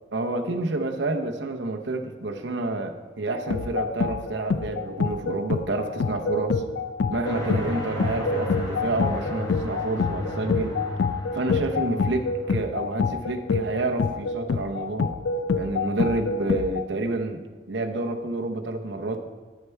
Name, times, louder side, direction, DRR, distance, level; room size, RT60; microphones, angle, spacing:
voice 1, 0.1-6.6 7.1-10.8 11.3-15.2 15.5-17.4 17.7-19.3, right 2 dB, 70° right, 4 dB, 0.8 m, -29 dB
sound 1, 3.4-16.8, left 4 dB, 80° left, 0.4 m, -27 dB
sound 2, 7.2-12.5, left 1 dB, 20° left, 1.4 m, -34 dB
10.5 x 6.6 x 4.5 m, 1.4 s
head